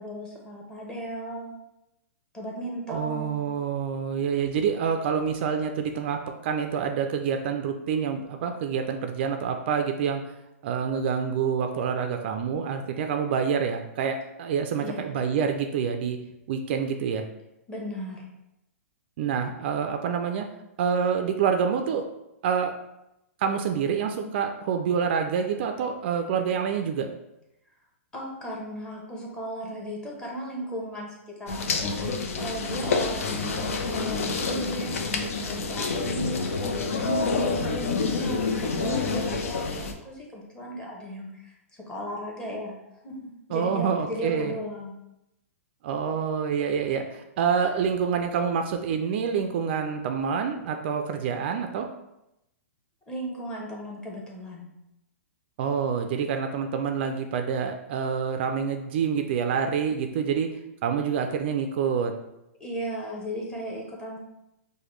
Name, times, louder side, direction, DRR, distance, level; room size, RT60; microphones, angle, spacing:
voice 1, 0.0-1.6 2.3-3.5 14.8-15.1 17.7-18.2 28.1-42.8 43.0-45.0 53.1-54.7 62.6-64.2, equal, 10° left, -3 dB, 0.9 m, -36 dB
voice 2, 2.9-10.2 10.6-16.2 16.5-17.2 19.2-20.5 20.8-22.1 22.4-22.7 23.4-27.1 43.5-44.5 45.8-51.9 55.6-60.5 60.8-62.1, right 7 dB, 50° right, 5 dB, 0.3 m, -27 dB
sound 1, 31.5-39.9, left 4 dB, 70° left, 0.6 m, -28 dB
4.9 x 2.2 x 3.1 m, 0.88 s
hypercardioid pair, 145°, 8 cm